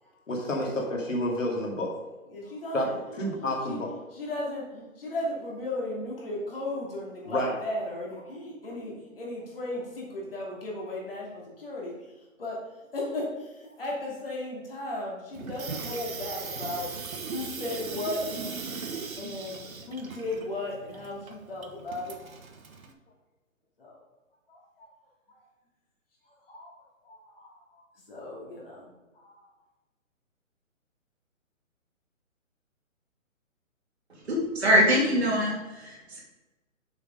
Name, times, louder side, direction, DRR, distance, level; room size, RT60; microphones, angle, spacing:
voice 1, 0.3-1.9 2.7-2.9 3.2-3.9 7.3-7.5, left 1 dB, 65° left, 0 dB, 2.5 m, -29 dB
voice 2, 2.3-12.6 12.9-16.9 17.3-22.3 23.8-24.0 24.5-24.9 25.3-25.4 26.3-26.7 27.0-29.5, left 1 dB, 45° left, -3 dB, 2.8 m, -36 dB
Water tap faucet / Sink (filling or washing), 15.3-22.9, right 4 dB, 85° right, 1.3 m, -38 dB
voice 3, 34.3-36.2, equal, 50° right, -3 dB, 2.9 m, -23 dB
6.9 x 6.1 x 5.1 m, 1.1 s
hypercardioid pair, 180°, 41 cm